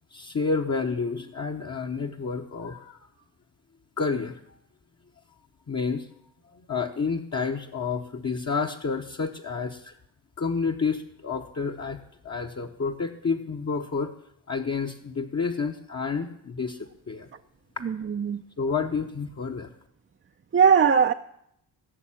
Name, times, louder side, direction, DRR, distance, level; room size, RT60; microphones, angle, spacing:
voice 1, 0.1-3.1 4.0-4.4 5.7-6.1 6.5-10.0 10.4-14.1 14.5-17.3 18.6-19.7, left 5 dB, 35° left, 1 dB, 1.0 m, -30 dB
voice 2, 17.8-18.4 20.5-21.1, right 6 dB, 30° right, 6 dB, 0.5 m, -20 dB
17.5 x 6.6 x 8.8 m, 0.75 s
cardioid pair, 80°, 43 cm